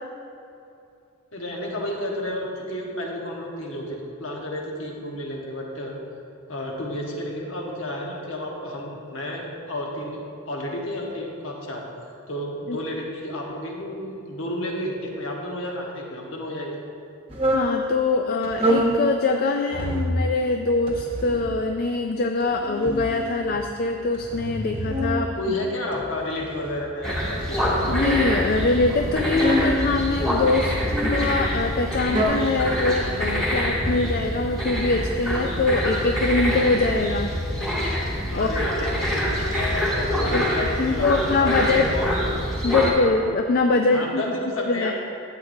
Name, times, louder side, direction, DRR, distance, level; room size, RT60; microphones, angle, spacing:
voice 1, 1.3-5.9 6.5-10.2 10.5-11.8 12.3-16.8 25.3-27.6 38.3-42.2 42.7-42.8 43.9-44.9, left 1 dB, 60° left, -1 dB, 1.2 m, -31 dB
sound 1, 17.3-17.7 18.4-18.9 19.7-20.2 20.9-21.5 22.4-23.6 24.1-25.2 25.9-26.9 27.6-28.3 29.2-29.8 30.6-31.2 31.8-32.2, equal, 25° right, 1.0 m, -26 dB
voice 2, 17.5-25.3 27.9-30.7 31.1-37.3 38.3-38.5 40.3-41.9 42.6-44.2 44.7-44.9, left 3 dB, 45° left, 4 dB, 0.3 m, -23 dB
sound 2, 27.0-42.9, equal, 5° left, 1.5 m, -26 dB
12.0 x 8.0 x 2.7 m, 2.6 s
head